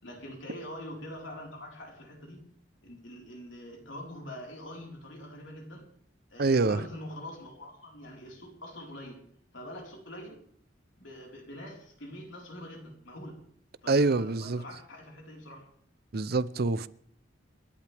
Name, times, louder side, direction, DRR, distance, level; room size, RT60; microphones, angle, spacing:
voice 1, 0.0-2.5 2.8-5.9 6.3-9.2 9.5-10.4 11.0-13.4 13.8-15.7, equal, 75° left, 4.5 m, -44 dB
voice 2, 6.4-6.8 13.9-14.6 16.1-16.9, right 3 dB, 55° right, 0.7 m, -25 dB
29.0 x 11.5 x 3.5 m
head